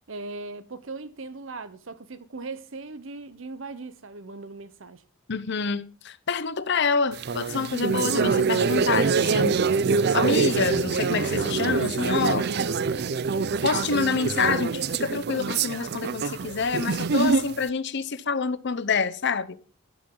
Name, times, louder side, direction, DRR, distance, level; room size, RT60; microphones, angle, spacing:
voice 1, 0.1-5.0 12.5-12.9, right 3 dB, 70° right, 1.0 m, -38 dB
voice 2, 5.3-9.6 10.1-12.5 13.6-19.6, left 5 dB, 55° left, 0.7 m, -27 dB
sound 1, 7.1-17.6, right 5 dB, 50° right, 0.5 m, -25 dB
12.5 x 10.0 x 3.9 m
head